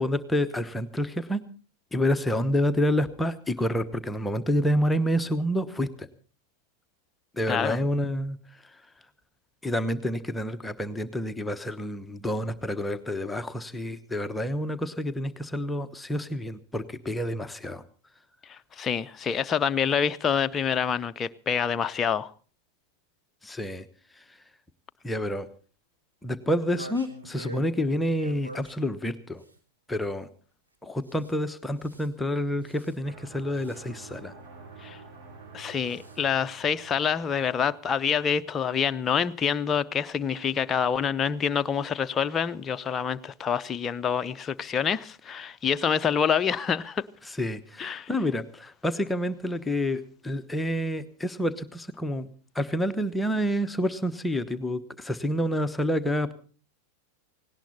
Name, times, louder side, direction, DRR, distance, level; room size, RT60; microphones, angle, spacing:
voice 1, 0.0-1.4 1.9-6.1 7.3-8.4 9.6-17.8 23.4-23.9 25.0-25.5 26.2-29.4 29.9-30.3 30.8-34.3 47.3-52.3 52.5-56.3, equal, 5° left, 1.1 m, -28 dB
voice 2, 18.5-22.3 34.8-35.0 35.5-47.0 47.8-48.1, left 7 dB, 25° left, 0.7 m, -27 dB
sound 1, 26.5-27.7 28.1-28.8 29.4-29.6 31.0-31.3 31.7-32.1 32.6-33.0 33.5-33.8 35.7-36.2, right 2 dB, 85° right, 3.2 m, -44 dB
sound 2, 33.0-39.8, right 4 dB, 45° right, 3.2 m, -50 dB
18.0 x 18.0 x 4.2 m
figure-of-eight pair, 90°, 0 cm